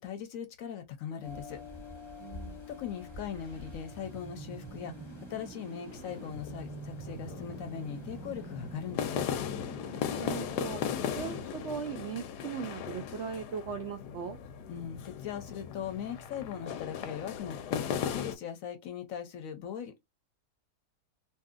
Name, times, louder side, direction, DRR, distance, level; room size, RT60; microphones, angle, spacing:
voice 1, 0.0-1.6 2.7-5.0 5.3-9.2 14.7-20.0, left 8 dB, 65° left, 0.9 m, -40 dB
sound 1, 1.2-8.9, left 3 dB, 25° left, 0.8 m, -49 dB
voice 2, 2.2-2.6 10.1-10.8 11.1-14.4, right 6 dB, 70° right, 0.6 m, -38 dB
sound 2, 3.0-11.6, right 4 dB, 30° right, 0.5 m, -47 dB
sound 3, 5.9-18.4, left 8 dB, 90° left, 1.2 m, -37 dB
2.8 x 2.6 x 2.4 m
omnidirectional pair, 1.7 m